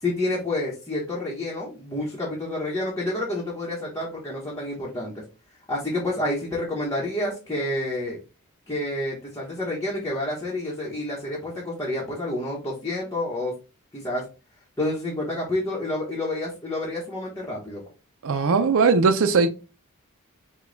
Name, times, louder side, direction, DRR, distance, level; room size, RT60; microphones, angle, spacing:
voice 1, 0.0-5.1 5.7-8.2 8.7-13.5 13.9-14.2 14.8-17.8, left 1 dB, 15° left, 0.9 m, -29 dB
voice 2, 18.2-19.5, right 4 dB, 65° right, 0.5 m, -19 dB
5.1 x 2.3 x 3.8 m
head